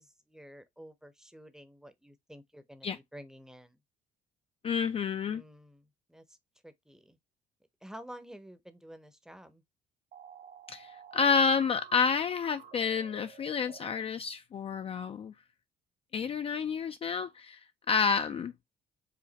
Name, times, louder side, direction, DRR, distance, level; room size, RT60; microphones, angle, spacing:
voice 1, 0.0-3.8 5.3-6.4 6.6-7.2 7.8-9.6, equal, 5° right, 0.7 m, -51 dB
voice 2, 4.6-5.4 10.7-15.3 16.1-17.6 17.9-18.5, left 6 dB, 35° left, 0.4 m, -29 dB
sound 1, 10.1-14.0, right 8 dB, 70° right, 1.9 m, -51 dB
5.0 x 2.5 x 3.9 m
cardioid pair, 110°, 17 cm